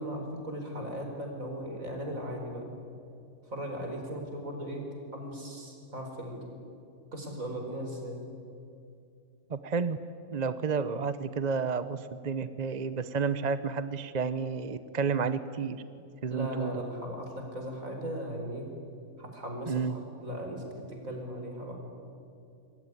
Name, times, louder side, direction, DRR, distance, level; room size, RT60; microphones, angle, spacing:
voice 1, 0.0-2.7 3.4-4.9 5.1-6.5 7.1-8.3 16.3-18.7 19.2-21.8, equal, 60° right, 2 dB, 5.2 m, -37 dB
voice 2, 9.5-10.0 10.3-15.8 16.2-16.7 19.7-20.0, right 5 dB, 35° right, 13 dB, 0.8 m, -31 dB
26.0 x 22.0 x 9.8 m, 2.5 s
omnidirectional pair, 1.6 m